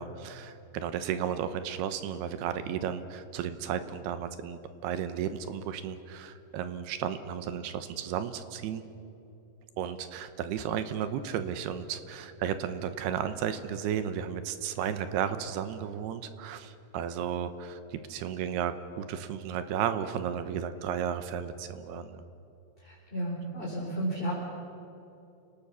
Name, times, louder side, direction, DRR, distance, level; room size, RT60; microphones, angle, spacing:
voice 1, 0.0-8.8 9.8-22.2, right 8 dB, 75° right, 11 dB, 2.8 m, -34 dB
voice 2, 22.8-24.3, right 1 dB, 10° left, -6 dB, 4.1 m, -33 dB
30.0 x 18.5 x 7.0 m, 2.8 s
omnidirectional pair, 4.9 m